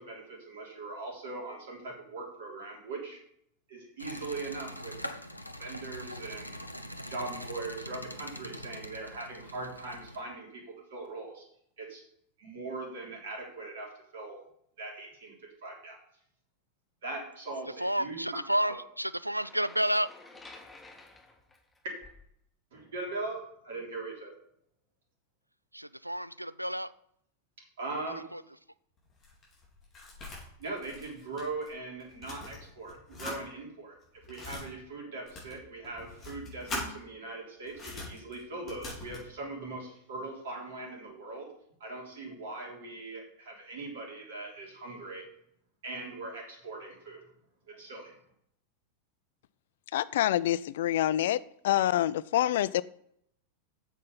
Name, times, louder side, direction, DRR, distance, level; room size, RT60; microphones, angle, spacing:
voice 1, 0.0-3.2 3.7-4.9 5.6-6.8 7.1-10.6 10.9-11.4 11.8-12.0 12.4-13.9 14.1-14.4 14.8-15.3 15.6-16.0 17.0-18.2 18.6-18.7 22.7-24.3 27.8-28.2 30.6-34.0 34.3-41.5 41.8-45.2 45.8-47.2 47.7-48.1, right 3 dB, 60° right, -1 dB, 3.3 m, -40 dB
sound 1, 4.0-10.2, equal, 90° left, 0.7 m, -43 dB
voice 2, 17.8-20.1 25.7-26.9 28.1-28.4, right 1 dB, 90° right, 17 dB, 0.3 m, -31 dB
sound 2, 19.3-22.3, left 3 dB, 10° left, 1.8 m, -52 dB
sound 3, 29.0-31.7 32.0-33.4 34.0-34.6 35.3-36.9 37.7-39.3, left 2 dB, 25° left, 4.0 m, -42 dB
voice 3, 49.9-51.4 51.6-52.8, left 13 dB, 55° left, 19 dB, 0.3 m, -26 dB
8.2 x 7.4 x 5.4 m, 0.70 s
figure-of-eight pair, 90°, 0 cm